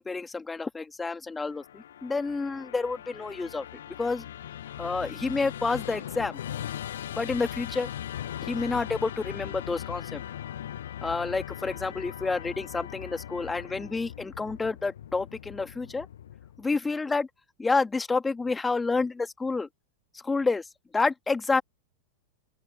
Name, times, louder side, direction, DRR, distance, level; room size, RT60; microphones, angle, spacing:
voice 1, 0.0-3.6 4.0-4.2 4.8-6.4 7.2-7.9 8.4-10.2 11.0-16.1 16.6-17.3 17.6-19.7 20.2-20.6 20.9-21.6, left 3 dB, 10° left, 1.9 m, -29 dB
Musical instrument, 1.4-16.7, left 11 dB, 60° left, 0.9 m, -39 dB
open air
figure-of-eight pair, 90°, 0 cm